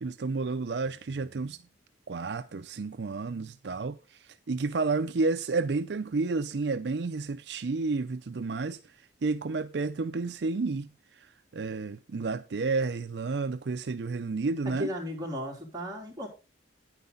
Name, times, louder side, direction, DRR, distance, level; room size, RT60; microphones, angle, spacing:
voice 1, 0.0-1.6 2.1-8.8 9.2-10.9 11.2-11.3 11.5-14.9, right 3 dB, 65° right, 0.5 m, -31 dB
voice 2, 14.6-16.3, equal, 20° right, 3.3 m, -35 dB
9.6 x 9.6 x 3.8 m
head